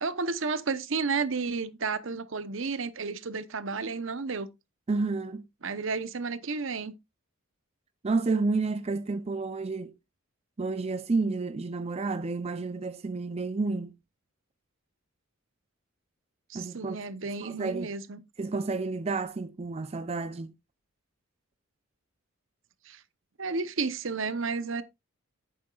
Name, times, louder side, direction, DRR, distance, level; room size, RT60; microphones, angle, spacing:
voice 1, 0.0-4.5 5.6-6.9 16.5-18.2 22.9-23.0 23.4-24.8, right 4 dB, 65° right, 0.8 m, -32 dB
voice 2, 4.9-5.5 8.0-9.9 10.6-13.9 16.5-17.0 17.2-17.9 18.4-20.5, right 3 dB, 30° right, 0.4 m, -30 dB
10.5 x 8.7 x 2.4 m
head